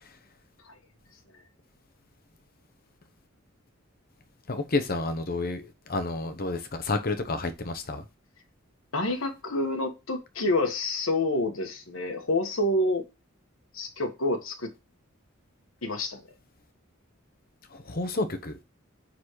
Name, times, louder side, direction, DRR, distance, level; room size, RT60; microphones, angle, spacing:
voice 1, 4.5-8.0 17.7-18.5, left 2 dB, 45° left, 1.0 m, -30 dB
voice 2, 8.9-13.0 13.7-14.7 15.8-16.2, left 2 dB, 75° left, 1.5 m, -28 dB
9.7 x 4.2 x 3.1 m
head